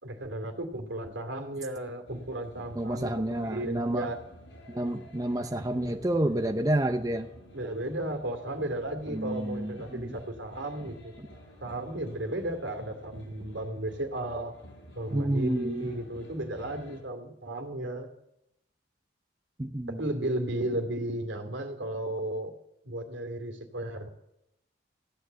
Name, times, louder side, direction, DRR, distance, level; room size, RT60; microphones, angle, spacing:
voice 1, 0.0-4.2 7.5-11.1 11.6-14.5 15.0-18.1 19.9-22.5 22.8-24.1, right 1 dB, 75° right, 5 dB, 2.5 m, -34 dB
sound 1, 2.1-17.0, equal, 75° left, 7.1 m, -51 dB
voice 2, 2.8-4.1 4.7-7.3 9.1-10.2 11.2-11.3 15.1-15.9 19.6-20.0, right 1 dB, 20° right, 6 dB, 0.7 m, -29 dB
15.0 x 10.0 x 8.0 m, 0.83 s
head